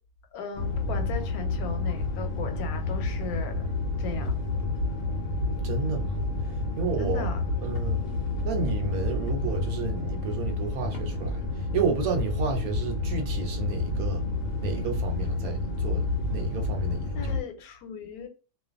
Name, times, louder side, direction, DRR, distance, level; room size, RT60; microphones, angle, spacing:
voice 1, 0.3-3.7 4.0-4.3 7.0-7.4 17.1-18.3, left 5 dB, 90° left, 1.1 m, -37 dB
sound 1, 0.5-17.4, left 2 dB, 65° left, 0.9 m, -29 dB
voice 2, 5.6-6.2 6.8-7.3 7.6-8.0 8.4-14.3 14.6-17.4, right 4 dB, 75° right, 1.0 m, -31 dB
2.5 x 2.2 x 2.4 m
omnidirectional pair, 1.5 m